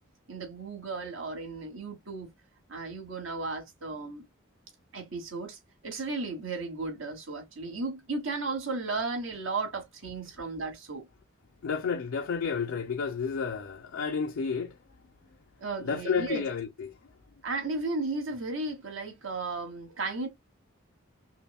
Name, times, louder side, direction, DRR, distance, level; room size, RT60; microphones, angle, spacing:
voice 1, 0.3-2.3 2.7-4.2 4.9-11.1 15.6-16.5 17.4-20.3, right 3 dB, 65° right, 1.5 m, -35 dB
voice 2, 11.6-14.8 15.8-16.9, left 5 dB, 70° left, 0.5 m, -31 dB
5.6 x 2.2 x 2.2 m
head